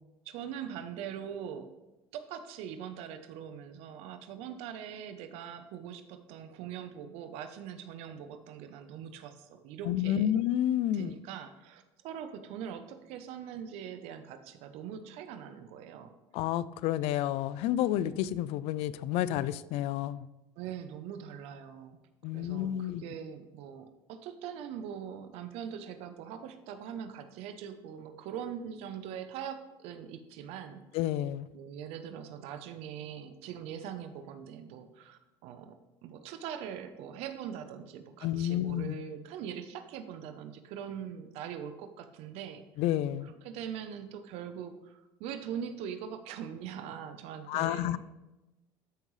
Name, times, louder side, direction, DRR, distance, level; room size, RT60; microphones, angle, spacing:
voice 1, 0.2-1.7 2.1-10.3 10.9-16.1 20.6-22.0 22.3-30.8 31.5-42.6 43.2-48.0, right 8 dB, 70° right, 9 dB, 0.8 m, -42 dB
voice 2, 9.8-11.1 16.3-20.3 22.2-23.0 30.9-31.5 38.2-38.9 42.8-43.3 47.5-48.0, left 12 dB, 65° left, 17 dB, 0.4 m, -30 dB
12.5 x 5.3 x 3.2 m, 1.0 s
supercardioid pair, 95°, 11 cm